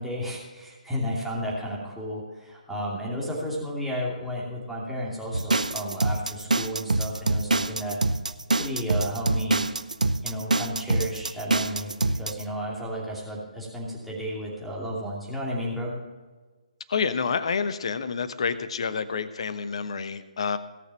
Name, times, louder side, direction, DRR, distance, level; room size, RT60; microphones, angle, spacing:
voice 1, 0.0-8.0 8.6-9.7 10.2-15.9, equal, ahead, -4 dB, 2.7 m, -33 dB
sound 1, 5.3-12.4, right 2 dB, 75° right, 0.7 m, -25 dB
voice 2, 16.9-20.6, left 5 dB, 45° left, 13 dB, 1.0 m, -28 dB
17.5 x 6.6 x 5.9 m, 1.3 s
figure-of-eight pair, 140°, 4 cm